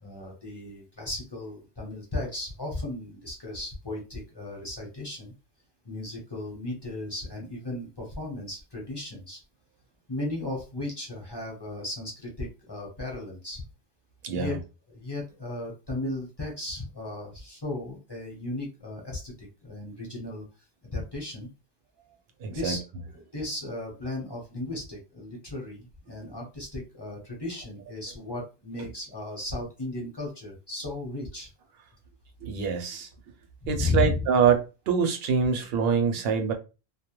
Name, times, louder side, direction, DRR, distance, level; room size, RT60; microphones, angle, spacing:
voice 1, 0.0-5.3 5.8-9.4 10.1-13.6 14.3-14.6 14.9-20.4 20.8-21.5 22.5-22.8 23.1-31.5 33.6-34.3, left 2 dB, 25° left, 0.7 m, -35 dB
voice 2, 14.2-14.6 22.4-22.8 32.4-33.1 33.7-36.5, right 6 dB, 70° right, 0.8 m, -25 dB
2.3 x 2.0 x 2.9 m
omnidirectional pair, 1.1 m